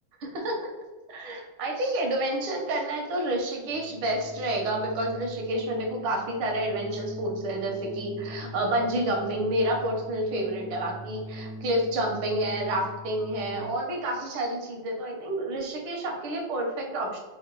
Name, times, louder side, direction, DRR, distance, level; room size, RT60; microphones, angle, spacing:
voice 1, 0.2-0.7 1.1-17.2, right 1 dB, 80° right, 1 dB, 1.8 m, -29 dB
Organ, 3.6-13.9, right 1 dB, 60° left, 1.0 m, -42 dB
4.1 x 2.6 x 4.6 m, 1.2 s
omnidirectional pair, 2.3 m